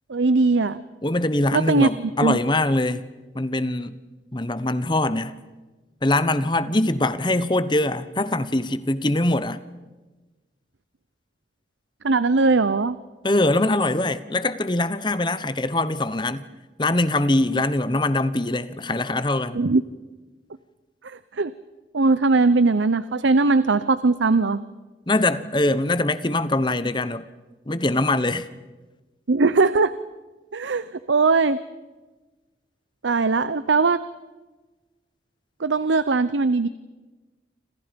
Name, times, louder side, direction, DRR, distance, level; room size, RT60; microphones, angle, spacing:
voice 1, 0.1-0.8 1.5-1.9 2.2-2.4 12.0-13.0 19.5-19.8 21.0-21.5 21.9-24.6 29.3-29.9 30.5-31.6 33.0-34.0 35.6-36.7, right 3 dB, 85° right, 0.7 m, -20 dB
voice 2, 1.0-3.0 3.3-4.0 4.3-5.4 6.0-9.6 13.2-16.4 16.8-19.6 25.1-27.2 27.7-28.5, left 2 dB, 25° left, 1.0 m, -23 dB
29.0 x 27.0 x 5.3 m
head